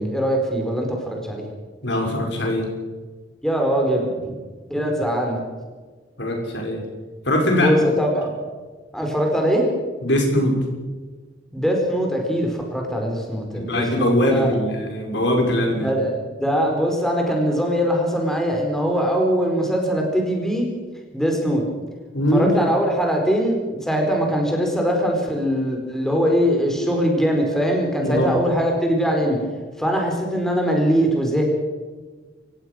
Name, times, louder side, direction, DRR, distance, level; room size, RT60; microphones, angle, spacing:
voice 1, 0.0-1.4 3.4-4.0 4.7-5.4 7.5-8.3 8.9-9.7 11.5-14.5 15.8-20.7 21.1-21.6 22.3-29.4 29.8-31.4, equal, 5° left, 1 dB, 4.5 m, -21 dB
voice 2, 1.8-2.7 6.2-6.8 7.2-7.7 10.0-10.6 13.5-15.9 22.1-22.5 28.0-28.3, left 1 dB, 65° left, 2 dB, 6.1 m, -21 dB
28.0 x 16.5 x 6.4 m, 1.4 s
head